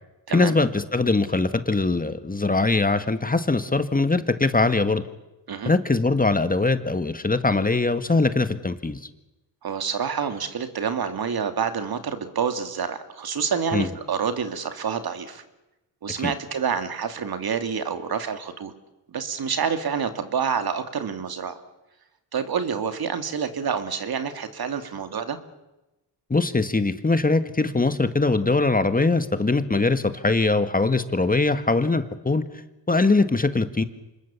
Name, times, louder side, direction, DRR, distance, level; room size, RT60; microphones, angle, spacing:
voice 1, 0.3-5.0 5.6-9.0 13.7-13.9 16.2-16.3 26.3-32.6 32.9-33.8, left 3 dB, 20° left, 10 dB, 1.6 m, -22 dB
voice 2, 9.6-15.4 16.0-18.7 19.1-21.6 22.3-25.4, right 6 dB, 55° right, 8 dB, 2.6 m, -28 dB
26.0 x 21.0 x 7.2 m, 0.99 s
cardioid pair, 65°, 43 cm